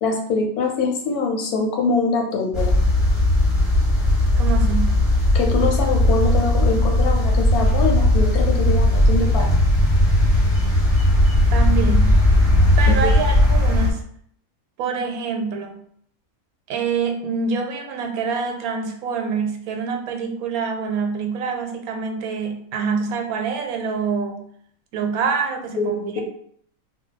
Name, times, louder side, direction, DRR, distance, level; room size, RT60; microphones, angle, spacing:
voice 1, 0.0-2.7 5.3-9.5 12.9-13.1 25.8-26.2, left 4 dB, 80° left, 2 dB, 1.2 m, -23 dB
sound 1, 2.5-13.9, left 1 dB, ahead, 0.9 m, -17 dB
voice 2, 4.4-5.0 11.5-12.2 12.8-14.0 14.8-15.8 16.7-24.4 24.9-26.2, right 5 dB, 85° right, 4 dB, 1.1 m, -26 dB
2.6 x 2.2 x 3.8 m, 0.64 s
omnidirectional pair, 1.5 m